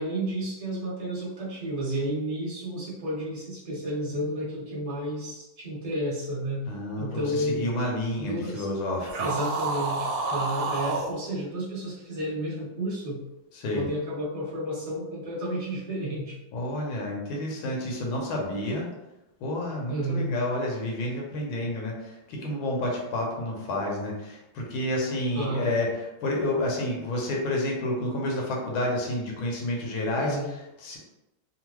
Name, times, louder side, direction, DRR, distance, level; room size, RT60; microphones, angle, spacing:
voice 1, 0.0-6.6 7.0-7.7 8.2-8.7 9.2-13.2 13.7-16.4 19.9-20.3 25.3-25.7 30.2-30.5, right 1 dB, 30° right, -8 dB, 0.7 m, -31 dB
voice 2, 6.7-9.3 13.5-13.9 16.5-18.9 19.4-31.0, left 1 dB, 80° left, -1 dB, 1.5 m, -30 dB
sound 1, 9.0-11.1, right 3 dB, 75° right, 1.3 m, -29 dB
3.6 x 2.1 x 3.0 m, 0.97 s
omnidirectional pair, 2.2 m